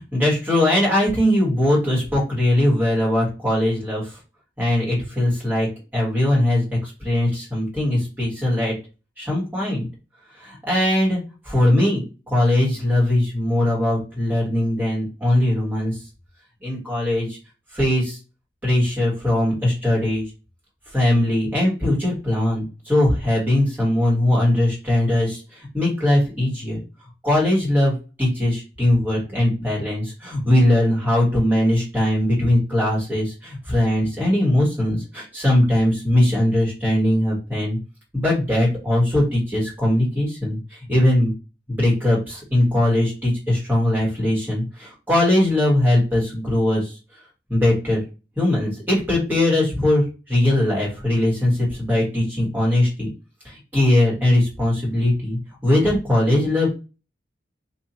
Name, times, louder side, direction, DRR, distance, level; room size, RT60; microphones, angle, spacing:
voice 1, 0.0-4.0 4.6-5.7 5.9-8.7 9.2-9.9 10.3-12.0 12.3-15.9 16.6-17.4 17.7-18.2 18.6-20.2 20.9-26.8 27.2-37.8 38.1-41.3 41.7-46.9 47.5-48.0 48.4-53.1 53.4-55.4 55.6-56.7, left 1 dB, 10° right, -4 dB, 1.6 m, -20 dB
2.7 x 2.7 x 4.2 m, 0.32 s
head